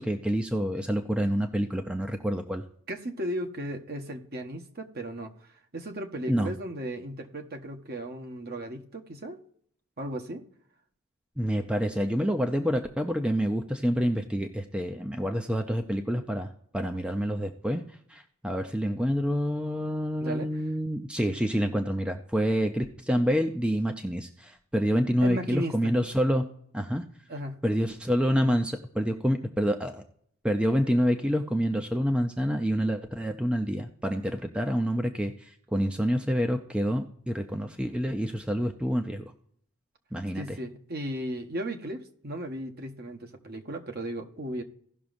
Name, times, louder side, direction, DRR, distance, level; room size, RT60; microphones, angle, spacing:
voice 1, 0.0-2.6 6.3-6.5 11.4-17.8 18.1-26.5 26.7-27.0 27.6-30.0 30.4-39.2 40.1-40.6, equal, 5° right, 5 dB, 0.6 m, -27 dB
voice 2, 2.9-5.3 5.7-9.4 10.0-10.4 20.2-20.5 25.2-26.0 27.3-27.6 40.3-44.6, right 1 dB, 45° right, 4 dB, 1.1 m, -35 dB
17.5 x 6.1 x 2.6 m, 0.67 s
head